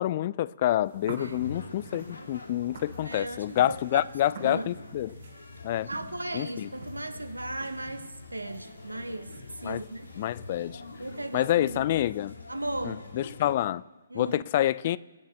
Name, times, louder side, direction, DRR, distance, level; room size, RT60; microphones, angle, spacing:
voice 1, 0.0-5.2 5.6-5.9 6.3-6.7 9.6-9.8 10.2-10.8 11.3-12.3 12.8-13.8 14.1-15.0, left 13 dB, 40° left, 0.3 m, -27 dB
sound 1, 0.8-11.5, right 2 dB, 65° right, 3.8 m, -48 dB
sound 2, 1.2-13.5, left 3 dB, 80° left, 1.8 m, -46 dB
voice 2, 1.2-1.5 3.0-4.0 4.4-4.7 5.9-10.1 11.0-11.8 12.5-13.0 14.1-14.4, right 1 dB, 90° right, 1.0 m, -36 dB
22.0 x 9.1 x 3.5 m
figure-of-eight pair, 135°, 0 cm